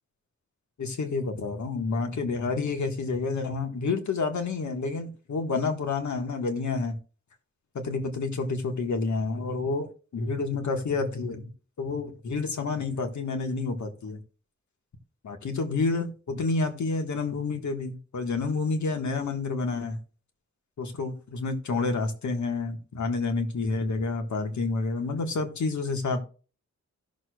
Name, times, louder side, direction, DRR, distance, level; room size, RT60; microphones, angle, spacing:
voice 1, 0.8-7.0 7.7-11.5 11.8-14.2 15.2-20.0 20.8-26.2, left 3 dB, 75° left, 1.5 m, -29 dB
16.5 x 6.5 x 2.3 m
wide cardioid pair, 105°, 29 cm